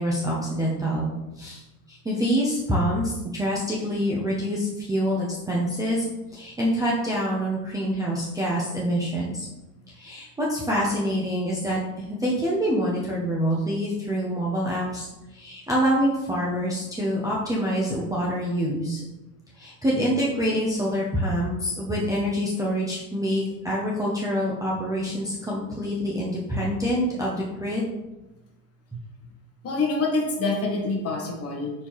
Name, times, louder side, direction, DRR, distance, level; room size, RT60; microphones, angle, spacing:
voice 1, 0.0-1.6 1.9-6.0 6.3-9.5 9.9-15.1 15.3-19.0 19.6-27.9 28.9-29.0, equal, 10° right, -6 dB, 0.6 m, -26 dB
voice 2, 29.6-31.7, left 3 dB, 30° left, 1 dB, 1.1 m, -26 dB
4.5 x 3.5 x 3.0 m, 1.0 s
hypercardioid pair, 100°, 47 cm